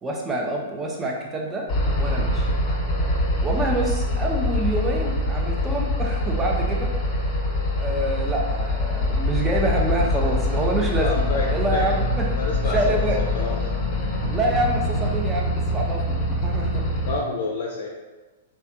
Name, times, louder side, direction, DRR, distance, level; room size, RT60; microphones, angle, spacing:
voice 1, 0.0-1.7 2.0-2.5 3.4-6.9 7.8-11.2 11.5-12.3 12.6-13.2 14.3-16.8, right 1 dB, 15° right, -1 dB, 0.6 m, -26 dB
sound 1, 1.7-17.2, left 1 dB, 30° left, 0.9 m, -24 dB
voice 2, 11.0-11.9 12.4-13.7 17.1-17.9, left 3 dB, 55° left, -2 dB, 0.4 m, -29 dB
3.3 x 2.3 x 2.7 m, 1.2 s
hypercardioid pair, 115°, 0 cm